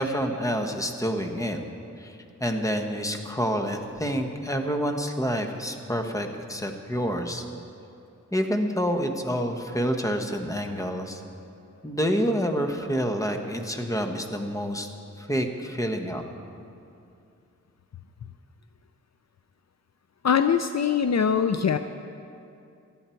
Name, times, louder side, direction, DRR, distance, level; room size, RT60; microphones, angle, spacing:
voice 1, 0.0-1.6 2.0-7.4 8.3-11.2 11.8-14.9 15.2-16.2, equal, 10° left, 4 dB, 1.3 m, -28 dB
voice 2, 20.2-21.8, left 7 dB, 60° left, 9 dB, 0.5 m, -22 dB
18.0 x 13.0 x 4.5 m, 2.6 s
wide cardioid pair, 75°, 31 cm